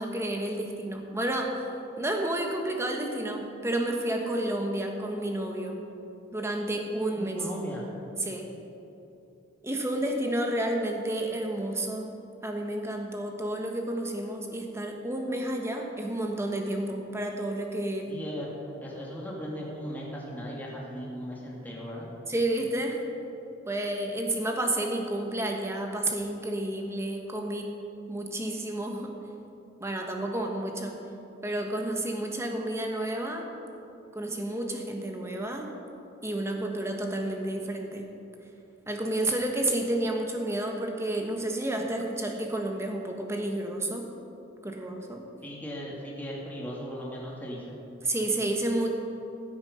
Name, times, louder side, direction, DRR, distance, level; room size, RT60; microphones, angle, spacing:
voice 1, 0.0-1.7 2.0-5.8 6.3-7.4 8.2-8.5 9.6-12.1 12.4-18.1 22.3-23.0 23.7-27.7 28.1-29.1 29.8-31.0 31.4-33.4 34.1-35.7 36.2-38.0 38.9-44.1 44.6-45.2 48.0-48.9, right 1 dB, 15° right, 2 dB, 1.3 m, -30 dB
voice 2, 7.2-7.8 18.0-18.5 18.8-22.1 45.4-47.8, equal, 10° left, -4 dB, 2.1 m, -37 dB
16.0 x 8.9 x 5.6 m, 2.8 s
head